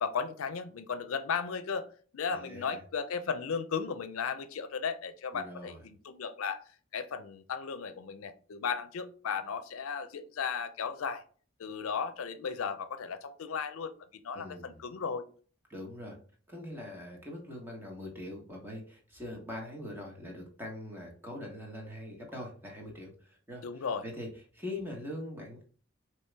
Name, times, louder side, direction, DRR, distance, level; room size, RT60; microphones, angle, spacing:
voice 1, 0.0-1.9 2.1-6.6 6.9-11.2 11.6-13.9 14.2-15.3 23.6-24.0, left 6 dB, 85° left, 11 dB, 0.5 m, -35 dB
voice 2, 2.3-2.8 5.3-5.8 14.3-14.8 15.7-16.2 16.5-24.3 24.5-25.6, left 1 dB, 10° right, 0 dB, 1.2 m, -42 dB
4.5 x 3.0 x 3.3 m, 0.42 s
head